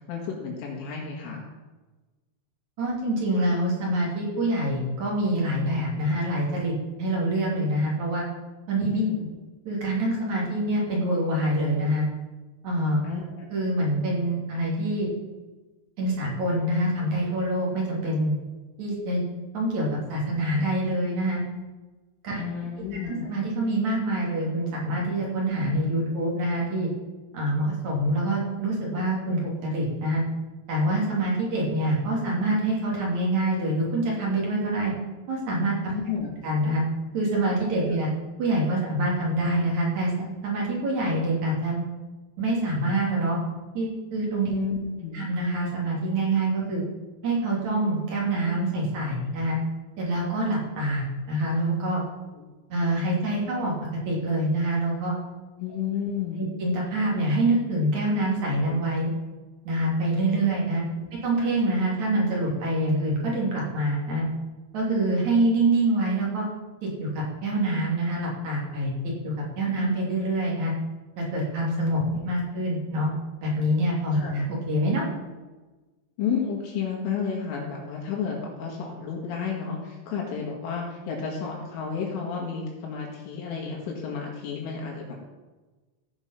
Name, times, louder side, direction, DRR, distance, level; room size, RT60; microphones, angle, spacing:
voice 1, 0.1-1.4 8.9-9.3 13.0-13.5 22.4-23.3 35.9-36.3 44.5-45.2 52.3-52.5 55.6-56.5 60.5-60.6 61.0-61.1 72.1-72.2 74.1-74.4 76.2-85.2, left 6 dB, 75° left, -2 dB, 4.3 m, -31 dB
voice 2, 2.8-8.2 8.7-8.9 9.7-12.0 12.6-13.0 13.5-15.1 16.0-18.3 18.8-19.2 19.5-21.4 22.2-22.4 23.0-26.9 27.3-30.2 30.7-34.9 35.3-35.9 36.4-36.8 37.1-38.1 38.4-41.8 42.4-43.4 43.7-44.5 45.1-46.8 47.2-49.6 50.0-52.0 52.7-53.7 54.1-55.1 56.4-59.1 59.7-60.8 61.2-64.2 64.7-66.5 66.8-70.7 71.2-73.1 73.4-75.1, right 1 dB, 40° right, -4 dB, 3.6 m, -25 dB
16.0 x 6.0 x 5.8 m, 1.2 s
omnidirectional pair, 5.8 m